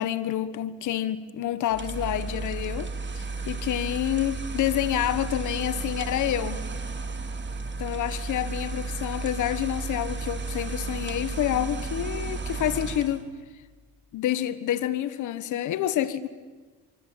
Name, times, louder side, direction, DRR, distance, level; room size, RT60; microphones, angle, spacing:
voice 1, 0.0-2.9 3.1-6.6 7.8-13.2 14.1-16.3, left 12 dB, 80° left, 1.3 m, -28 dB
sound 1, 1.7-13.2, right 3 dB, 35° right, 3.0 m, -33 dB
25.0 x 24.0 x 9.1 m
cardioid pair, 90°, 30 cm